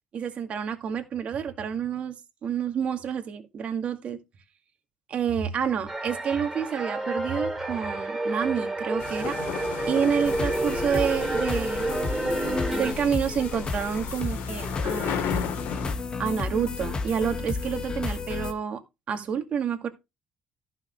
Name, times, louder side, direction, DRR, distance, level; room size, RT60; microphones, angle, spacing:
voice 1, 0.1-4.2 5.1-9.4 9.9-12.0 12.7-15.5 16.2-18.8 19.1-19.9, right 7 dB, 40° right, 2.1 m, -29 dB
sound 1, 5.9-12.9, right 2 dB, 10° right, 3.0 m, -30 dB
sound 2, 9.0-15.9, left 8 dB, 80° left, 2.6 m, -35 dB
sound 3, 10.2-18.5, left 4 dB, 25° left, 1.3 m, -32 dB
14.5 x 6.2 x 3.2 m
cardioid pair, 165°, 3 cm